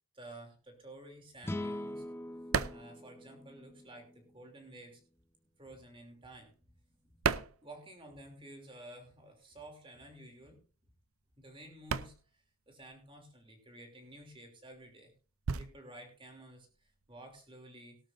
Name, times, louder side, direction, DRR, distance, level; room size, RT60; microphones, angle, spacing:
voice 1, 0.1-2.1 2.7-5.0 5.6-6.7 7.0-7.2 7.6-10.6 11.4-15.1 15.6-18.0, right 1 dB, 25° right, 4 dB, 3.0 m, -52 dB
sound 1, 0.7-4.0 4.3-8.4 8.7-17.5, right 5 dB, 80° right, 0.6 m, -39 dB
sound 2, 1.4-4.7, left 1 dB, 10° left, 0.5 m, -43 dB
18.0 x 12.5 x 2.6 m, 0.36 s
head